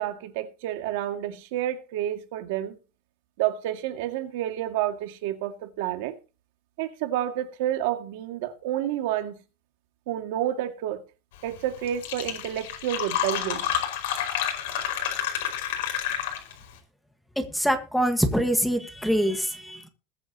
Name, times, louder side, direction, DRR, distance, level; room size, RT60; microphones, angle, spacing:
voice 1, 0.0-2.8 3.4-6.2 6.8-9.4 10.1-11.0 11.4-13.7, right 12 dB, 70° right, 2.0 m, -29 dB
Fill (with liquid), 11.6-11.7 11.9-16.7, left 10 dB, 90° left, 5.2 m, -29 dB
voice 2, 17.5-19.9, equal, ahead, 1.5 m, -24 dB
21.0 x 9.0 x 2.9 m
supercardioid pair, 175°, 0 cm